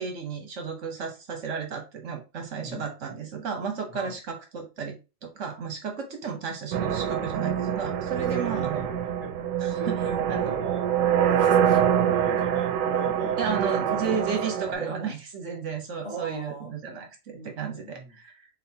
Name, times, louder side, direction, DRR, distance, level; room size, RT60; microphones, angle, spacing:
voice 1, 0.0-8.8 9.6-10.0 10.3-10.5 13.4-18.5, right 6 dB, 70° right, 4 dB, 1.2 m, -33 dB
sound 1, 6.7-14.7, right 9 dB, 90° right, 1.0 m, -25 dB
voice 2, 8.2-9.5 9.8-14.3 14.8-15.0 16.0-18.2, right 3 dB, 25° left, -5 dB, 2.7 m, -40 dB
4.1 x 3.9 x 2.8 m, 0.29 s
omnidirectional pair, 1.3 m